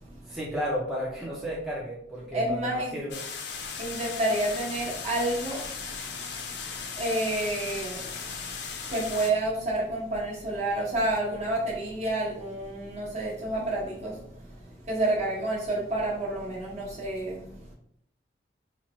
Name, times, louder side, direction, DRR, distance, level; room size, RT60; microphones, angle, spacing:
voice 1, 0.3-3.2, equal, ahead, -6 dB, 0.5 m, -33 dB
voice 2, 2.3-2.9 3.8-6.3 6.9-8.4 8.8-17.6, right 1 dB, 40° right, -4 dB, 1.1 m, -30 dB
sound 1, 3.1-9.3, left 5 dB, 75° left, 0.5 m, -37 dB
4.1 x 2.1 x 3.0 m, 0.71 s
head